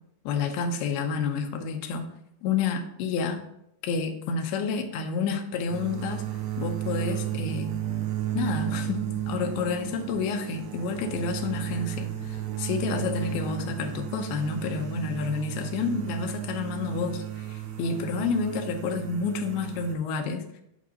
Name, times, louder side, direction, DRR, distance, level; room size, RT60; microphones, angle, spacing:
voice 1, 0.3-2.1 2.4-3.4 3.8-6.2 6.6-7.7 8.3-20.5, left 5 dB, 80° left, 5 dB, 2.4 m, -29 dB
sound 1, 5.7-19.9, right 12 dB, 75° right, 2.6 m, -33 dB
11.0 x 5.1 x 2.8 m, 0.78 s
omnidirectional pair, 5.2 m